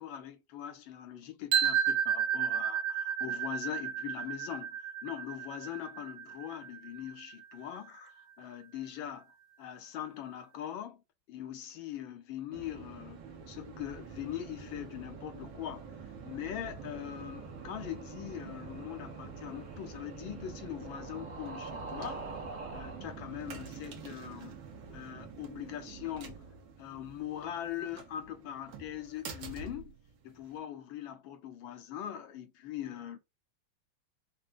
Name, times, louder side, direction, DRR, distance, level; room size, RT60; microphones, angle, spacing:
voice 1, 0.0-4.8 5.0-9.3 9.6-11.0 11.3-22.3 22.7-24.6 24.9-26.5 26.8-30.0 30.2-33.2, left 11 dB, 75° left, 1.5 m, -42 dB
sound 1, 1.5-7.4, right 8 dB, 85° right, 1.8 m, -32 dB
sound 2, 12.5-30.6, right 5 dB, 70° right, 1.6 m, -47 dB
sound 3, 16.3-23.0, right 3 dB, 30° right, 1.2 m, -47 dB
5.5 x 2.1 x 2.4 m
omnidirectional pair, 2.3 m